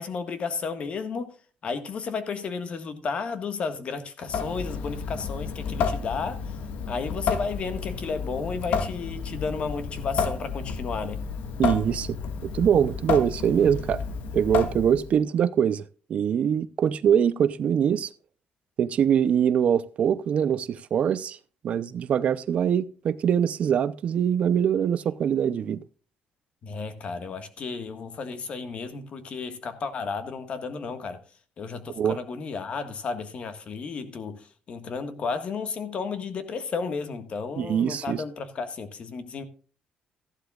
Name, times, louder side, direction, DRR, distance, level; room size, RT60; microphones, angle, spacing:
voice 1, 0.0-1.3 1.6-6.6 6.9-11.2 26.6-31.2 31.6-39.4, left 5 dB, 45° left, 1.6 m, -33 dB
Water tap faucet / Sink (filling or washing) / Drip, 4.2-15.2, left 6 dB, 85° left, 1.7 m, -31 dB
voice 2, 11.6-12.2 12.4-14.0 14.3-15.8 16.1-18.1 18.8-21.4 21.6-25.8 32.0-32.2 37.6-38.2, right 8 dB, 50° right, 0.6 m, -23 dB
14.5 x 11.5 x 2.4 m
cardioid pair, 135°, 3 cm